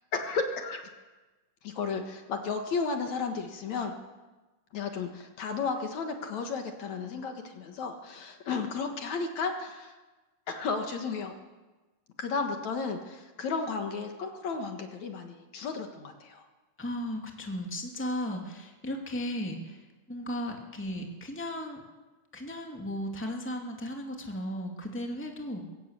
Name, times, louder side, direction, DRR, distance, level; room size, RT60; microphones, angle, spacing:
voice 1, 0.1-0.8 1.6-3.9 4.7-9.9 10.5-11.4 12.2-16.4, left 4 dB, 60° left, 5 dB, 2.7 m, -33 dB
voice 2, 16.8-21.8 22.3-25.6, equal, 5° left, 2 dB, 2.2 m, -35 dB
22.0 x 16.5 x 8.4 m, 1.2 s
omnidirectional pair, 3.8 m